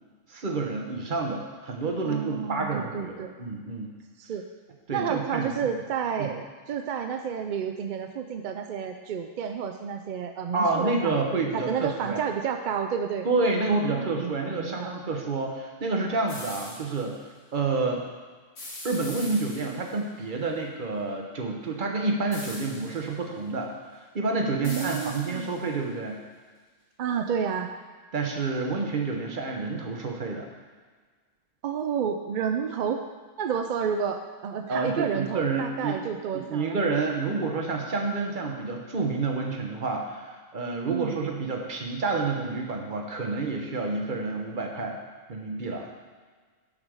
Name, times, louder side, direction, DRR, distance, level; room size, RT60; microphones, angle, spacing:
voice 1, 0.3-3.9 4.9-5.5 6.2-6.3 10.5-12.2 13.2-18.0 18.8-26.2 28.1-30.5 34.7-36.0 36.3-45.0 45.3-45.9, right 3 dB, 45° right, 1 dB, 1.1 m, -29 dB
voice 2, 2.0-3.3 4.2-4.4 4.9-11.2 11.5-13.3 13.6-14.9 24.6-25.5 27.0-27.7 31.6-33.0 33.4-36.8 37.3-37.4 40.9-41.2, right 7 dB, 65° right, 5 dB, 0.5 m, -30 dB
sound 1, 16.3-17.0 18.6-20.0 22.3-23.1 24.6-25.7, left 1 dB, 70° left, 1.9 m, -41 dB
7.3 x 5.1 x 6.2 m, 1.5 s
omnidirectional pair, 1.3 m